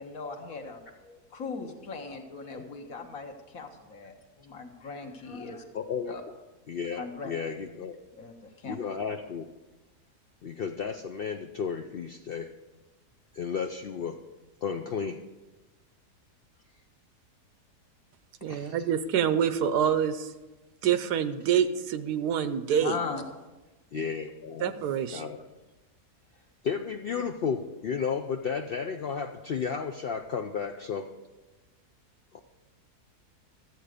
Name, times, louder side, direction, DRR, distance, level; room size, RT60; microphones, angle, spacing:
voice 1, 0.0-5.6 6.1-6.2 7.0-7.3 8.2-8.8 22.7-23.2, left 4 dB, 60° left, 4 dB, 1.6 m, -39 dB
voice 2, 5.7-6.1 6.7-8.0 8.6-9.5 10.4-12.5 13.3-14.2 14.6-15.2 18.4-18.8 23.9-24.7 25.1-25.4 26.6-31.1 32.3-32.4, left 6 dB, 80° left, 6 dB, 0.5 m, -33 dB
voice 3, 18.4-20.3 20.8-23.0 24.6-25.2, right 8 dB, 85° right, 12 dB, 1.3 m, -26 dB
13.5 x 8.1 x 5.0 m, 1.1 s
omnidirectional pair, 1.7 m